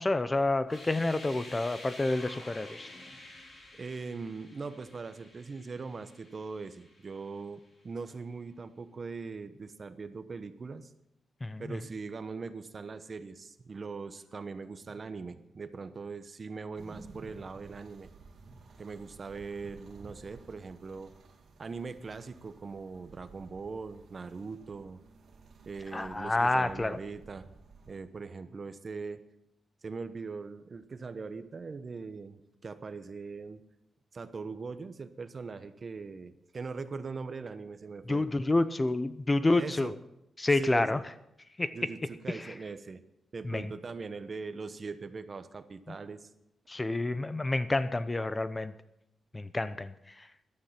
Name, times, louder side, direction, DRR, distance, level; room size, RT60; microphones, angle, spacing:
voice 1, 0.0-2.9 11.4-11.8 25.9-27.0 38.1-39.9 40.4-41.0 41.6-41.7 42.3-42.5 43.4-43.7 45.9-46.0 46.7-48.7 49.3-49.9 50.2-50.3, left 2 dB, 20° left, 13 dB, 0.7 m, -29 dB
sound 1, 0.6-7.5, left 2 dB, 40° left, 4.5 m, -50 dB
voice 2, 3.7-10.9 11.6-18.1 18.8-21.1 21.6-25.0 25.7-27.5 27.9-29.2 29.8-33.6 34.1-38.3 39.6-39.9 40.5-41.0 41.7-43.0 43.3-46.3, right 4 dB, 40° right, 11 dB, 1.0 m, -41 dB
sound 2, 16.8-28.0, right 4 dB, 70° right, 2.3 m, -54 dB
14.5 x 12.0 x 5.8 m, 0.83 s
cardioid pair, 95°, 0 cm